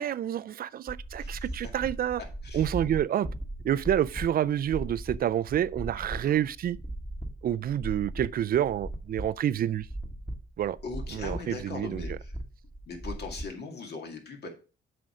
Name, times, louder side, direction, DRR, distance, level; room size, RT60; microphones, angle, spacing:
voice 1, 0.0-2.2 2.5-3.3 3.6-6.8 7.4-9.9 10.6-10.8 11.1-12.2, right 10 dB, 50° right, 0.4 m, -28 dB
sound 1, 0.9-13.4, right 1 dB, 5° left, 1.3 m, -38 dB
voice 2, 1.1-1.7 2.4-2.7 6.2-6.4 10.8-12.3 12.9-14.5, left 4 dB, 55° left, 2.1 m, -40 dB
7.7 x 5.0 x 4.9 m
cardioid pair, 90°, 20 cm